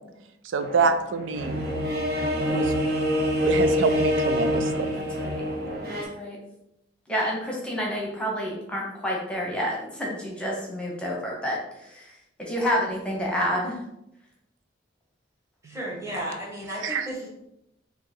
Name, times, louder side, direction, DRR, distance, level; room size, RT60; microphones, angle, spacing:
voice 1, 0.5-1.6 2.5-2.7 3.4-4.9 15.7-15.8 16.8-17.1, right 4 dB, 85° right, 8 dB, 0.4 m, -26 dB
sound 1, 0.6-6.0, equal, 55° right, 0.9 m, -26 dB
voice 2, 4.9-5.5 5.9-6.4 7.1-13.8, equal, 5° left, -3 dB, 0.9 m, -29 dB
voice 3, 15.6-17.3, equal, 15° right, -4 dB, 1.3 m, -34 dB
3.7 x 2.9 x 4.4 m, 0.83 s
head